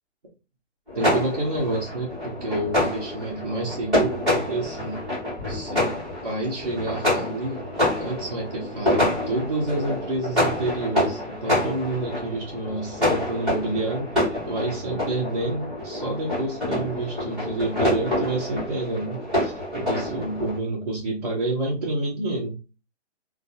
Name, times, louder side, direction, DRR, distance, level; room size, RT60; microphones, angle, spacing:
sound 1, 0.9-20.6, left 1 dB, ahead, 0.9 m, -27 dB
voice 1, 0.9-5.1 5.5-7.6 8.0-22.6, right 2 dB, 35° right, -5 dB, 0.5 m, -29 dB
2.5 x 2.2 x 2.6 m, 0.31 s
hypercardioid pair, 170°, 36 cm